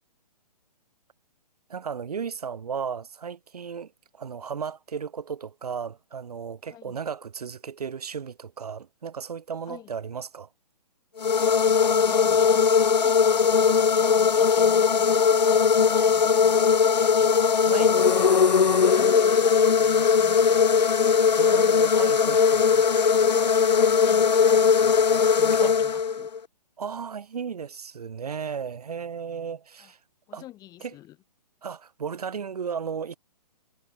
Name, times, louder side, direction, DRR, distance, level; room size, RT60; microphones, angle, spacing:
voice 1, 1.7-10.5 17.6-17.9 21.3-22.6 25.6-25.8 26.8-30.0 30.3-30.4 30.8-30.9 31.6-33.2, right 6 dB, 65° right, 1.3 m, -35 dB
sound 1, 11.2-26.4, left 6 dB, 85° left, 0.5 m, -20 dB
voice 2, 11.6-17.4 17.7-20.9 21.3-26.3 29.8-29.9 30.3-31.2, left 14 dB, 20° left, 1.7 m, -47 dB
figure-of-eight pair, 130°, 21 cm